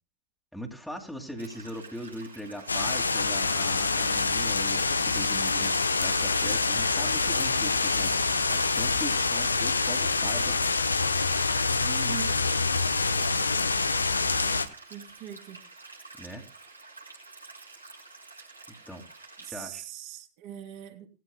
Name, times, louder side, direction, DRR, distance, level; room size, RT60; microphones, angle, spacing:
voice 1, 0.5-10.8 16.2-16.4 18.9-19.0 19.4-19.8, equal, ahead, 0 dB, 2.5 m, -40 dB
sound 1, 1.4-19.5, right 3 dB, 85° right, 4.5 m, -49 dB
sound 2, 2.7-14.7, left 4 dB, 80° left, 1.0 m, -26 dB
voice 2, 11.8-12.4 14.9-15.6 19.4-21.1, right 11 dB, 45° right, 3 dB, 3.4 m, -41 dB
18.5 x 14.0 x 2.2 m, 0.35 s
figure-of-eight pair, 90°, 0 cm